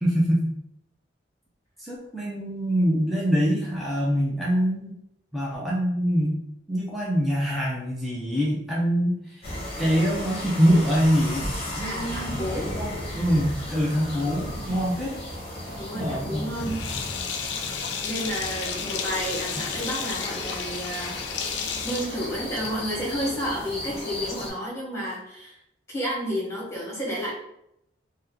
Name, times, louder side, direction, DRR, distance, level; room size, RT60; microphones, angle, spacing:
voice 1, 0.0-0.5 1.8-4.9 5.3-6.4 6.7-9.5 9.8-11.5 11.7-12.3 12.8-15.2 15.9-16.5, equal, ahead, -6 dB, 0.5 m, -24 dB
sound 1, 9.4-24.5, left 1 dB, 30° left, 0.8 m, -35 dB
voice 2, 11.8-12.7 14.7-14.9 15.7-16.8 18.0-21.2 21.8-25.6 25.9-27.3, equal, 15° left, -5 dB, 1.2 m, -31 dB
Sink (filling or washing), 16.5-22.9, left 6 dB, 75° left, 0.4 m, -33 dB
2.8 x 2.2 x 3.7 m, 0.77 s
head